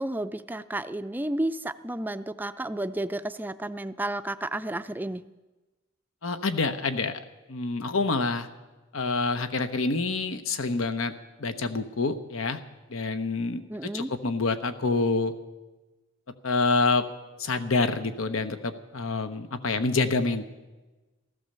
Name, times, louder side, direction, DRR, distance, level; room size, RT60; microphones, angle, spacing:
voice 1, 0.0-5.2 13.7-14.1, right 1 dB, 10° right, 11 dB, 0.4 m, -32 dB
voice 2, 6.2-7.2 7.5-8.5 8.9-11.1 11.4-12.6 12.9-13.6 13.9-15.3 16.4-17.0 17.4-20.4, left 3 dB, 90° left, 9 dB, 1.1 m, -27 dB
15.0 x 14.0 x 6.8 m, 1.2 s
head